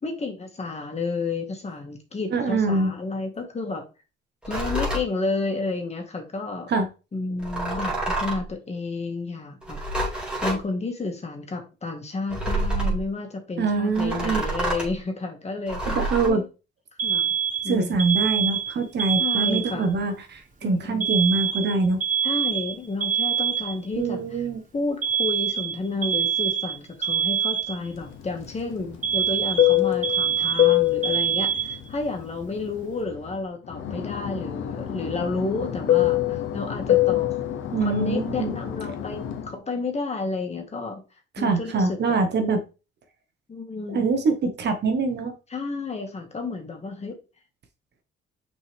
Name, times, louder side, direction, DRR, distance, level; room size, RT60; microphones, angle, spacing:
voice 1, 0.0-3.8 4.5-6.7 7.1-9.8 10.1-16.0 16.3-16.4 17.0-17.3 17.6-18.0 19.2-20.0 20.6-21.1 22.2-24.5 24.7-37.3 37.8-41.0 41.4-42.2 43.5-44.1 45.5-47.2, left 3 dB, 35° left, 3 dB, 2.0 m, -31 dB
voice 2, 2.3-2.9 6.7-6.8 13.6-14.4 15.8-16.4 17.7-22.0 24.0-24.6 37.7-38.5 41.4-42.6 43.9-45.3, right 3 dB, 60° right, 7 dB, 1.4 m, -24 dB
sound 1, 4.4-5.1 7.4-8.5 9.6-10.6 12.3-13.0 13.9-14.9 15.7-16.3, right 1 dB, 5° right, 2.7 m, -28 dB
Alarm, 17.0-20.0 21.0-24.0 25.0-28.0 29.0-32.0, right 8 dB, 40° right, 1.6 m, -25 dB
Fixed-wing aircraft airplane, 28.0-33.3 33.7-39.5, left 14 dB, 90° left, 1.0 m, -25 dB
6.2 x 4.5 x 3.6 m, 0.31 s
cardioid pair, 90°, 20 cm